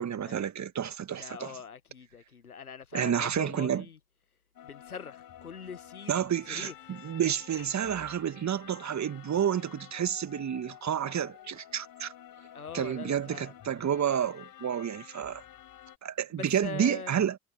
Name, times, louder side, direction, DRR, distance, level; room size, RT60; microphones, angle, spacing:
voice 1, 0.0-1.5 2.9-3.9 6.1-12.1 12.7-15.4 16.0-17.4, right 9 dB, 40° right, 2.1 m, -30 dB
voice 2, 1.2-4.0 4.6-6.7 12.5-13.5 16.3-17.2, left 6 dB, 90° left, 1.5 m, -43 dB
sound 1, 4.5-16.0, left 11 dB, 50° left, 4.3 m, -51 dB
figure-of-eight pair, 50°, 43 cm